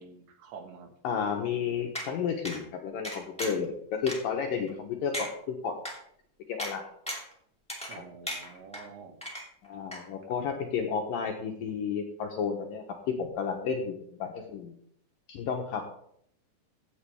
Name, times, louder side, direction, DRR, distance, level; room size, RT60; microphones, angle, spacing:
voice 1, 0.0-0.9 7.9-9.2, right 5 dB, 85° right, 5 dB, 3.7 m, -47 dB
voice 2, 1.0-5.8 6.5-6.9 9.6-14.7 15.3-15.8, left 6 dB, 70° left, 2 dB, 2.2 m, -32 dB
sound 1, 1.9-2.1 2.4-2.6 3.0-3.6 4.1-4.2 4.7-4.8 5.1-5.3 5.8-5.9 6.6-6.7 7.1-7.3 7.7-8.0 8.3-8.8 9.2-9.7 9.9-10.0, equal, 5° left, 1.0 m, -36 dB
15.0 x 8.5 x 3.4 m, 0.67 s
omnidirectional pair, 5.0 m